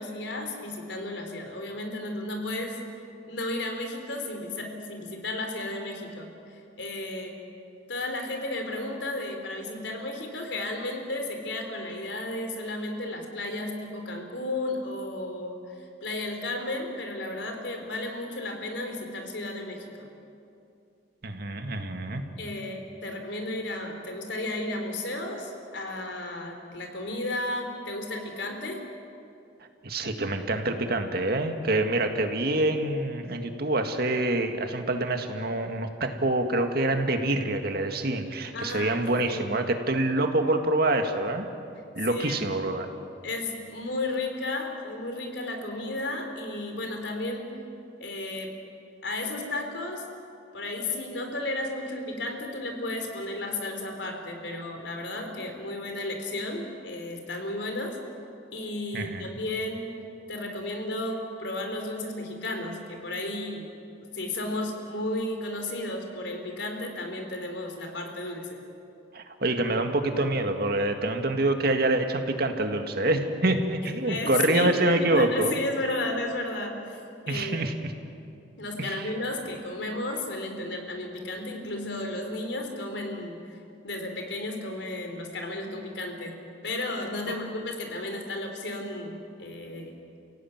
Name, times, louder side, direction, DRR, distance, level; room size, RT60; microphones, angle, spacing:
voice 1, 0.0-2.8 3.3-7.4 7.9-20.1 22.4-28.8 38.5-39.5 42.1-42.4 43.2-47.6 48.0-48.5 49.0-50.1 50.5-58.0 58.5-60.0 60.3-63.7 64.1-68.6 74.0-77.0 77.3-77.7 78.6-83.6 83.8-90.0, left 2 dB, 75° left, 4 dB, 3.8 m, -33 dB
voice 2, 21.2-22.2 29.8-41.5 42.0-42.9 58.9-59.3 69.1-75.5 77.3-77.9 78.8-79.1, right 2 dB, 55° right, 5 dB, 2.0 m, -26 dB
29.5 x 16.5 x 9.5 m, 2.6 s
head